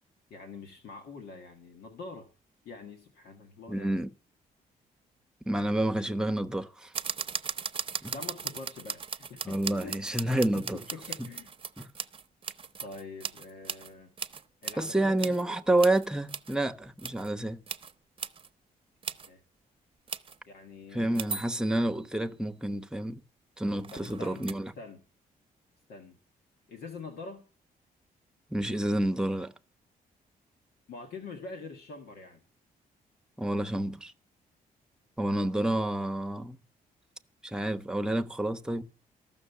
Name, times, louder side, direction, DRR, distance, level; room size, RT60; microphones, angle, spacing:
voice 1, 0.3-2.3 2.6-4.0 8.1-10.6 10.9-11.5 12.8-14.1 14.6-15.6 19.1-19.4 20.5-21.4 23.9-24.5 24.8-25.0 25.9-26.2 26.7-27.4 30.9-32.4, left 4 dB, 85° left, 1.7 m, -45 dB
voice 2, 3.7-4.1 5.5-6.9 8.0-8.1 9.4-10.8 11.2-11.3 11.8-11.9 14.8-17.6 20.9-23.2 23.6-24.7 28.5-29.5 33.4-34.1 35.2-36.6 37.4-38.8, right 1 dB, 5° right, 0.9 m, -29 dB
sound 1, 6.9-13.9 14.2-15.4 15.8-16.6 17.0-17.3 17.7-17.9 18.2-18.5 19.0-19.3 20.1-20.4 21.1-22.1 23.8-24.5, right 6 dB, 35° right, 0.8 m, -38 dB
14.0 x 6.4 x 8.3 m
cardioid pair, 95°, 16 cm